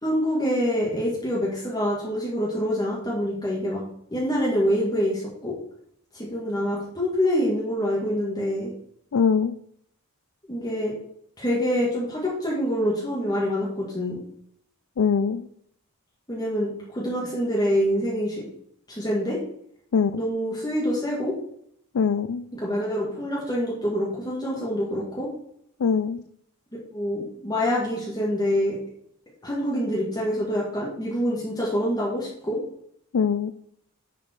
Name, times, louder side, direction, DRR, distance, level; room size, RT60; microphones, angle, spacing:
voice 1, 0.0-3.8 4.1-5.5 6.1-8.7 10.5-10.9 11.4-14.2 16.3-18.4 18.9-19.4 20.2-21.4 22.5-25.3 26.9-28.8 29.4-32.6, equal, 20° left, -6 dB, 2.2 m, -26 dB
voice 2, 9.1-9.5 15.0-15.5 19.9-20.2 21.9-22.5 25.8-26.2 33.1-33.5, left 6 dB, 70° left, 11 dB, 0.4 m, -22 dB
11.0 x 5.2 x 4.7 m, 0.69 s
head